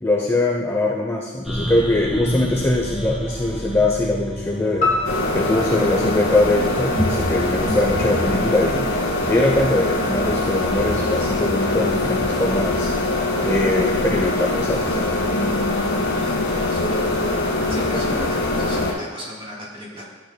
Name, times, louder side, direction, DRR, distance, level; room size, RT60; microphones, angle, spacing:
voice 1, 0.0-4.9 5.3-12.9 13.4-15.0, left 2 dB, 15° left, -2 dB, 0.6 m, -22 dB
sound 1, 1.4-8.4, equal, ahead, 1.1 m, -29 dB
sound 2, 4.8-7.3, left 3 dB, 40° left, 1.5 m, -27 dB
sound 3, 5.0-18.9, left 2 dB, 60° left, 1.6 m, -23 dB
voice 2, 16.1-17.3 17.7-20.1, equal, 30° right, -4 dB, 2.4 m, -36 dB
12.0 x 8.2 x 2.2 m, 1.2 s
head